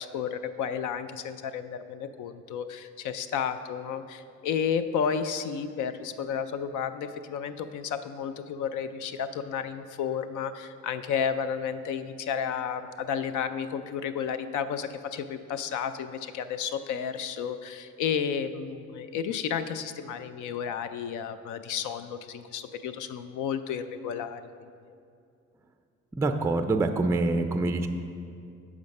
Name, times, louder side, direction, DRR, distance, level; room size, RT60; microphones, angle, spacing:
voice 1, 0.0-24.7, left 7 dB, 80° left, 11 dB, 0.5 m, -32 dB
voice 2, 26.2-27.9, right 2 dB, 10° right, 7 dB, 0.3 m, -25 dB
7.2 x 4.9 x 5.4 m, 2.4 s
cardioid pair, 90°, 30 cm